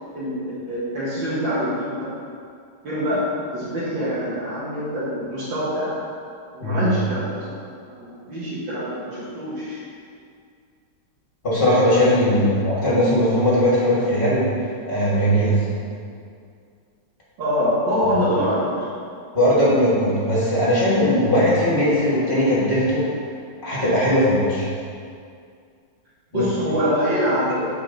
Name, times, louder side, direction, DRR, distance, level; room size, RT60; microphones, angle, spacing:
voice 1, 0.1-2.0 2.8-6.0 6.5-7.4 7.8-9.8 17.4-18.9 26.3-27.5, equal, 85° right, -12 dB, 2.1 m, -24 dB
voice 2, 11.4-15.6 19.3-23.1 23.6-24.7 26.3-26.8 27.5-27.7, equal, 30° left, -8 dB, 1.7 m, -19 dB
7.4 x 4.8 x 3.8 m, 2.3 s
omnidirectional pair, 2.0 m